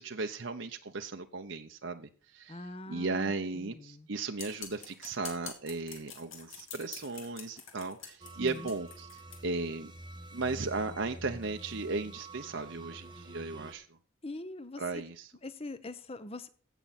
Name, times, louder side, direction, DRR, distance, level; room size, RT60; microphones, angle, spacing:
voice 1, 0.0-2.6 2.9-9.9 10.3-14.0 14.8-15.3, right 3 dB, 65° right, 5 dB, 0.9 m, -36 dB
voice 2, 2.5-4.1 8.4-8.7 13.1-13.2 14.2-15.0 15.4-16.5, left 2 dB, 30° left, 13 dB, 0.9 m, -43 dB
sound 1, 4.4-9.4, left 7 dB, 85° left, 2.9 m, -46 dB
sound 2, 8.2-13.7, right 2 dB, 25° right, 0.9 m, -47 dB
16.5 x 6.9 x 4.3 m, 0.41 s
head